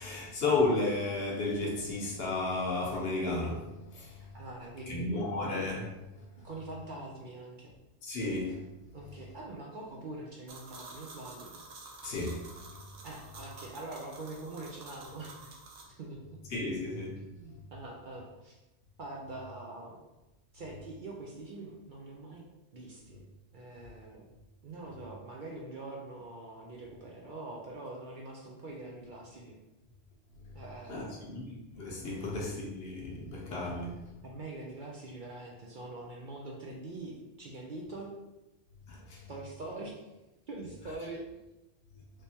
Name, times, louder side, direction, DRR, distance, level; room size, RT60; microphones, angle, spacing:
voice 1, 0.0-4.2 4.9-5.9 8.0-8.6 12.0-12.4 16.5-17.1 30.9-34.0 38.9-39.3, left 2 dB, 65° left, -1 dB, 0.9 m, -33 dB
voice 2, 4.2-5.2 6.4-7.7 8.9-11.6 13.0-15.6 15.9-16.2 17.2-18.6 19.0-20.0 20.5-22.4 22.7-23.2 23.5-24.2 24.6-29.6 30.5-31.4 32.2-32.3 33.7-33.9 34.2-38.1 39.3-40.1 40.5-41.2, right 2 dB, 55° right, -2 dB, 0.6 m, -44 dB
sound 1, 10.5-15.8, right 3 dB, 75° right, 1.0 m, -49 dB
3.3 x 3.2 x 2.7 m, 0.99 s
omnidirectional pair, 1.2 m